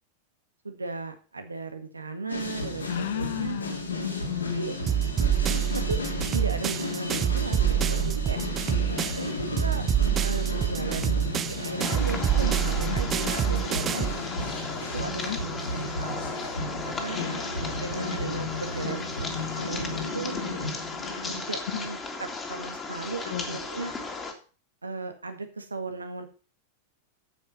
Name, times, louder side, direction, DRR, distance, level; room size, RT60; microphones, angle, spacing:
voice 1, 0.6-3.6 4.5-4.7 5.7-8.4 9.2-9.9 10.2-14.0 14.9-15.3 15.7-17.2 17.8-20.4 21.2-23.9 24.8-26.3, right 3 dB, 80° right, 7 dB, 1.7 m, -36 dB
sound 1, 2.3-21.4, left 2 dB, 75° left, 2.6 m, -33 dB
voice 2, 2.9-4.7 8.3-9.1 12.9-13.0 15.2-15.4 17.2-17.5 23.3-23.6, left 9 dB, 60° left, 11 dB, 1.3 m, -33 dB
sound 2, 4.9-9.3 9.6-14.2, right 10 dB, 25° right, 0.4 m, -26 dB
sound 3, 11.8-24.3, left 3 dB, 20° left, 2.2 m, -36 dB
8.8 x 7.9 x 5.5 m, 0.37 s
figure-of-eight pair, 90°, 0 cm